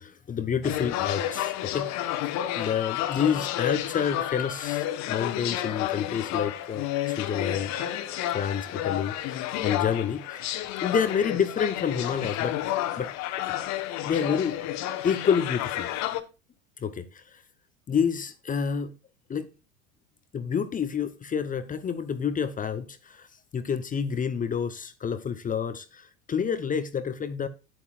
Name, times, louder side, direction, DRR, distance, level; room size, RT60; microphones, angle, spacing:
voice 1, 0.0-1.9 2.6-7.7 8.3-10.4 10.8-12.6 13.0-13.1 13.5-13.6 14.0-14.6 15.0-15.9 16.8-17.2 17.9-18.9 19.3-19.5 20.3-23.3 23.5-27.5, left 7 dB, 20° left, 0.9 m, -28 dB
sound 1, 0.6-16.2, left 12 dB, 45° left, 1.3 m, -31 dB
12.0 x 9.8 x 2.5 m
figure-of-eight pair, 85°, 39 cm